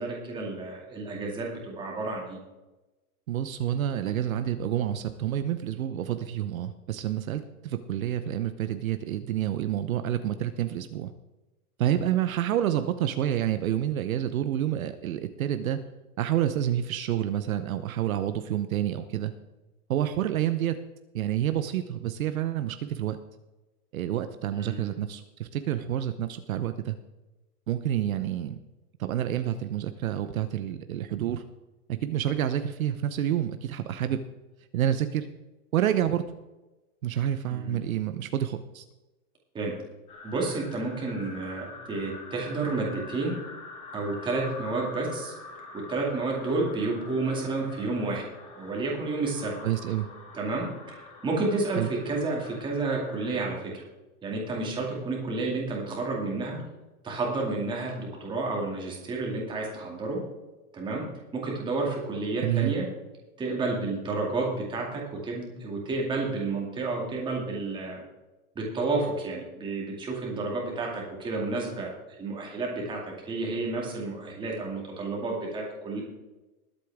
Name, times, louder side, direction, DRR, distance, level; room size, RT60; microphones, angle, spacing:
voice 1, 0.0-2.4 24.5-24.9 37.5-37.8 39.5-39.7 40.2-43.3 43.9-45.3 45.7-48.2 48.6-49.6 50.3-53.8 54.2-56.6 57.0-60.2 60.7-61.0 61.3-62.9 63.4-68.0 68.6-71.9 72.2-76.0, right 3 dB, 10° right, -2 dB, 2.3 m, -30 dB
voice 2, 3.3-11.1 11.8-15.8 16.2-19.3 19.9-20.8 21.1-23.2 23.9-27.0 27.7-28.6 29.0-31.4 31.9-34.2 34.7-35.3 35.7-36.2 37.0-38.8 49.6-50.1 51.8-51.9 62.4-62.7, right 11 dB, 60° right, 9 dB, 0.8 m, -28 dB
sound 1, 40.1-53.4, left 3 dB, 15° left, 1.2 m, -45 dB
21.0 x 8.4 x 3.5 m, 1.1 s
supercardioid pair, 170°, 46 cm